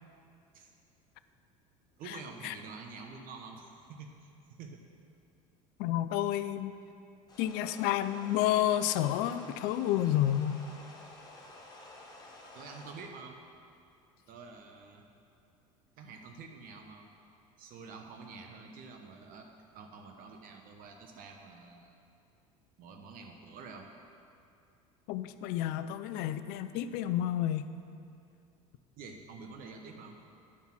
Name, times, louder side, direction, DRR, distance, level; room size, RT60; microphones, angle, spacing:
voice 1, 2.0-4.8 12.5-13.4 14.3-15.0 16.0-17.1 17.6-19.5 19.7-22.0 22.8-23.9 29.0-30.2, right 4 dB, 55° right, 3 dB, 0.9 m, -48 dB
voice 2, 5.8-6.8 7.4-10.7 25.1-27.7, left 12 dB, 60° left, 12 dB, 0.5 m, -30 dB
sound 1, 7.3-13.1, left 2 dB, 20° left, 1.7 m, -51 dB
9.9 x 5.4 x 6.0 m, 2.5 s
hypercardioid pair, 80°, 18 cm